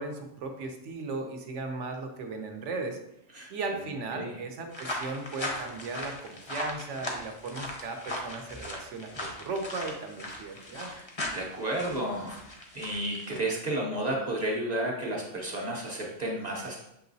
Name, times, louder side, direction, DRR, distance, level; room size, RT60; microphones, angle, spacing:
voice 1, 0.0-3.0 3.5-10.9, right 3 dB, 70° right, 4 dB, 0.9 m, -36 dB
sound 1, 4.7-13.4, left 1 dB, 35° left, 0.5 m, -38 dB
voice 2, 11.3-12.4 12.7-16.8, right 1 dB, 40° right, -2 dB, 0.8 m, -32 dB
6.8 x 2.9 x 2.6 m, 0.82 s
omnidirectional pair, 1.3 m